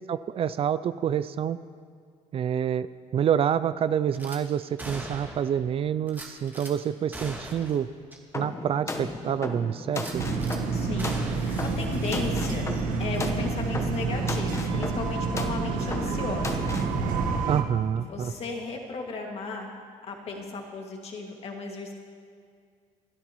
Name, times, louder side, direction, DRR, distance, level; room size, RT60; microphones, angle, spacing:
voice 1, 0.1-1.6 2.3-2.9 3.1-7.9 8.3-10.2 17.5-18.3, right 9 dB, 45° right, 15 dB, 0.4 m, -27 dB
Gunshot gunfire / Glass, 4.1-4.4 4.8-5.6 6.1-6.7 7.1-7.8 8.1-8.2 8.7-8.8 9.9-10.6 11.0-12.8 13.1-13.3, right 1 dB, 15° right, 1.7 m, -41 dB
sound 1, 8.3-17.0, left 2 dB, 20° left, 1.1 m, -35 dB
sound 2, 10.1-17.6, right 4 dB, 85° right, 1.2 m, -29 dB
voice 2, 10.7-12.7 13.0-16.7 18.0-19.7 20.0-21.9, left 3 dB, 50° left, 1 dB, 2.1 m, -35 dB
22.0 x 12.5 x 3.1 m, 2.2 s
cardioid pair, 110°, 14 cm